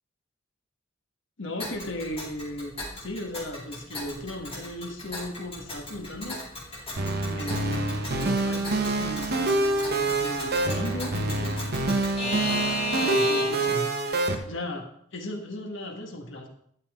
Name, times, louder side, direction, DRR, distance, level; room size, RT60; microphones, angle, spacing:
voice 1, 1.4-2.7 3.0-6.4 6.7-6.9 7.3-12.5 13.0-13.9 14.5-16.5, left 1 dB, 70° left, 3 dB, 1.7 m, -36 dB
Alarm / Clock, 1.6-13.8, left 1 dB, 30° left, 4.6 m, -35 dB
sound 1, 7.0-14.4, right 2 dB, 55° right, 1.2 m, -26 dB
12.5 x 7.6 x 3.7 m, 0.65 s
head